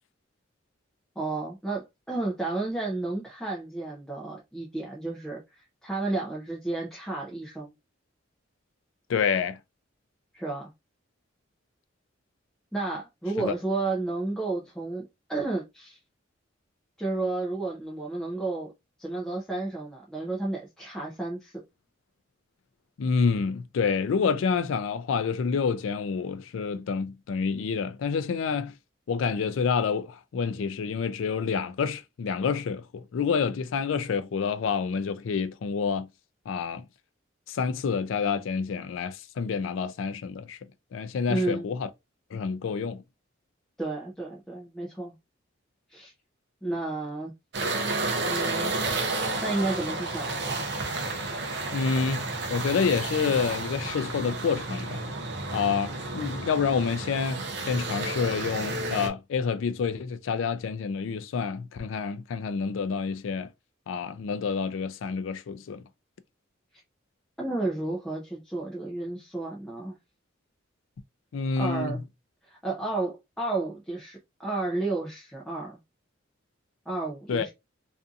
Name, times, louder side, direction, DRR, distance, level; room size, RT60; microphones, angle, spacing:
voice 1, 1.2-7.7 10.3-10.7 12.7-16.0 17.0-18.7 19.0-21.6 41.3-41.7 43.8-45.1 45.9-46.1 46.6-47.3 48.2-48.7 49.4-50.6 67.4-70.0 71.6-72.0 72.4-75.8 76.9-77.5, right 2 dB, 5° left, 0.4 m, -32 dB
voice 2, 9.1-9.6 13.4-13.5 23.0-28.7 29.1-36.1 36.5-36.8 37.5-40.6 40.9-41.9 42.3-43.0 51.7-55.0 55.5-63.5 63.9-65.8 71.3-72.0 77.3-77.5, left 5 dB, 80° left, 0.4 m, -28 dB
sound 1, 47.5-59.1, right 2 dB, 55° right, 0.5 m, -31 dB
2.6 x 2.5 x 2.3 m
head